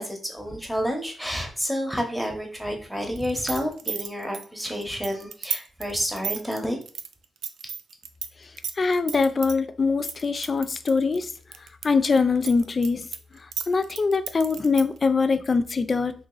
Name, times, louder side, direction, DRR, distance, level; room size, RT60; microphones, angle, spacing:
voice 1, 0.0-6.8, equal, 5° right, 0.9 m, -29 dB
sound 1, 3.2-8.3 8.6-9.5 10.1-11.9 12.2-15.0, right 7 dB, 85° right, 0.3 m, -33 dB
voice 2, 8.8-11.3 11.6-13.1 13.3-16.1, left 4 dB, 40° left, 0.3 m, -23 dB
2.9 x 2.5 x 3.8 m
cardioid pair, 80°, 0 cm